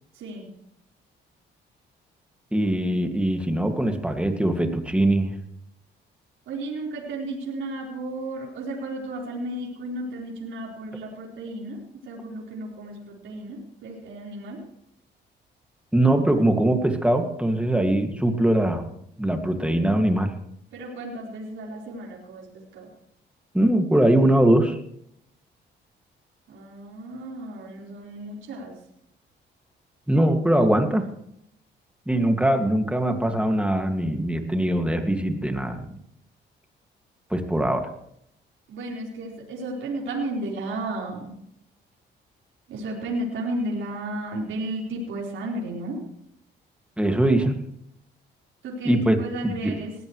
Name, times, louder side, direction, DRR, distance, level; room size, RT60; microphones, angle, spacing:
voice 1, 0.1-0.5 6.5-11.8 12.0-14.6 20.7-22.9 26.5-28.7 38.7-41.3 42.7-46.0 48.6-50.0, right 1 dB, 80° right, -4 dB, 4.6 m, -33 dB
voice 2, 2.5-5.3 15.9-18.8 19.2-20.3 23.5-24.8 30.1-31.1 32.1-36.0 37.3-37.8 47.0-47.6 48.8-49.2 49.4-49.8, right 1 dB, 5° right, 5 dB, 2.2 m, -22 dB
20.0 x 15.5 x 3.3 m, 0.74 s
cardioid pair, 90°, 20 cm